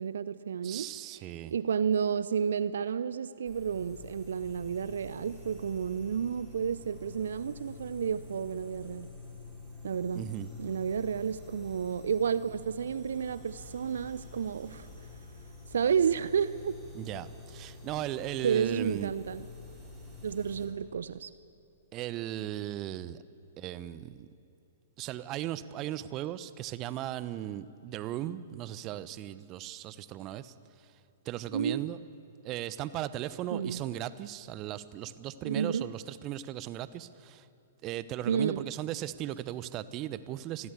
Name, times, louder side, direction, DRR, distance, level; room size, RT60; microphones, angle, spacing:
voice 1, 0.0-0.9 1.5-9.1 9.8-10.2 10.6-14.9 15.7-16.7 18.4-19.4 20.2-21.3 31.5-31.9 33.5-33.8 35.4-35.8 38.3-38.6, right 7 dB, 60° right, 16 dB, 0.7 m, -31 dB
voice 2, 0.6-1.5 10.1-10.5 16.9-19.1 21.9-23.2 23.6-24.3 25.0-30.5 31.2-32.0 32.4-37.4 37.8-40.7, right 13 dB, 30° right, 16 dB, 1.0 m, -37 dB
sound 1, 3.4-20.7, left 3 dB, 5° right, 7.0 m, -48 dB
28.0 x 21.0 x 8.4 m, 2.9 s
figure-of-eight pair, 110°, 0 cm